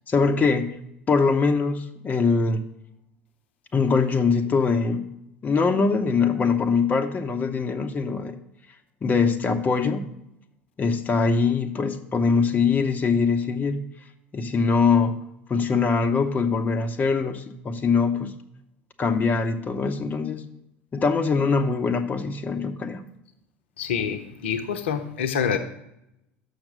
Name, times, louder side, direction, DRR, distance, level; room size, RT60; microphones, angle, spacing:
voice 1, 0.1-0.7 1.1-2.6 3.7-5.1 5.4-8.4 9.0-10.2 10.8-13.8 14.3-15.2 15.5-18.3 19.0-20.4 20.9-23.0, left 4 dB, 25° left, 6 dB, 0.7 m, -22 dB
voice 2, 23.8-25.6, left 7 dB, 65° left, 8 dB, 0.7 m, -26 dB
6.5 x 5.9 x 6.4 m, 0.82 s
figure-of-eight pair, 70°, 7 cm